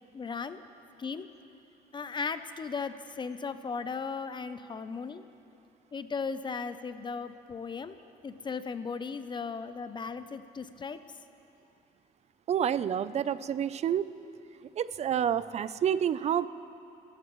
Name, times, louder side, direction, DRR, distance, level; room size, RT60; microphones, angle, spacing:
voice 1, 0.1-0.6 1.0-1.3 1.9-5.2 5.9-8.0 8.2-11.0, left 5 dB, 25° left, 11 dB, 0.6 m, -36 dB
voice 2, 12.5-14.1 14.8-16.5, right 9 dB, 40° right, 15 dB, 0.5 m, -28 dB
28.5 x 14.0 x 3.1 m, 2.7 s
cardioid pair, 110°, 17 cm